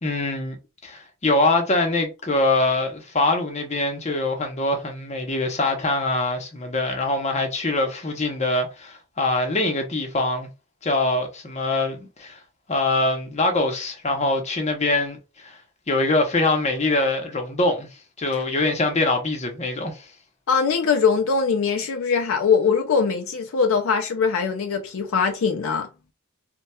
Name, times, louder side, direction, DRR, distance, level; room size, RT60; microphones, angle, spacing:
voice 1, 0.0-0.6 0.8-10.5 10.8-12.4 12.7-15.6 15.9-17.9 18.2-20.1, left 2 dB, 30° left, 0.7 m, -23 dB
voice 2, 20.5-25.9, left 5 dB, 65° left, 0.4 m, -22 dB
4.2 x 2.2 x 2.2 m
head